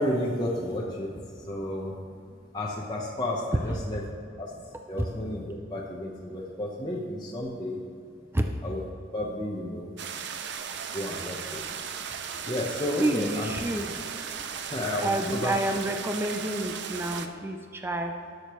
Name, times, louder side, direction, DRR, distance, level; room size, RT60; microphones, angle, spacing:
voice 1, 0.0-2.0 2.5-4.0 4.4-4.5 4.9-7.8 8.6-8.8 9.1-9.9 10.9-11.6 12.4-13.5 14.7-15.5, left 1 dB, 25° left, -4 dB, 0.9 m, -32 dB
sound 1, 10.0-17.3, right 7 dB, 65° right, 0.6 m, -36 dB
voice 2, 13.0-14.1 15.0-18.1, right 1 dB, 15° right, 4 dB, 0.5 m, -29 dB
18.5 x 6.6 x 3.1 m, 2.4 s
head